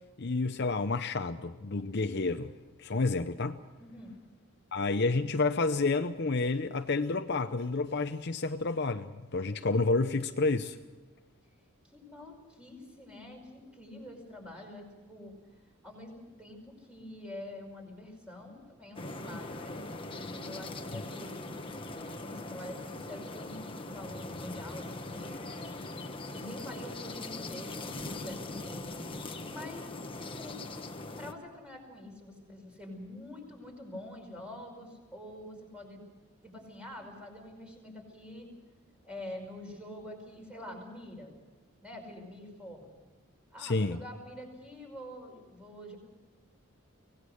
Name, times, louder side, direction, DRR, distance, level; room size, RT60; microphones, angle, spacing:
voice 1, 0.2-2.5 2.8-3.6 4.7-10.8 20.9-21.0 43.6-44.0, left 3 dB, 50° left, 0.7 m, -30 dB
voice 2, 3.8-4.2 11.8-15.4 15.8-19.9 20.3-21.5 22.0-25.9 26.3-29.1 29.5-29.9 30.2-30.6 31.2-36.0 36.4-38.5 39.0-41.3 41.8-42.9 43.5-46.0, left 1 dB, 5° right, 5.3 m, -46 dB
sound 1, 19.0-31.3, left 2 dB, 25° left, 1.3 m, -41 dB
24.5 x 18.5 x 6.5 m
head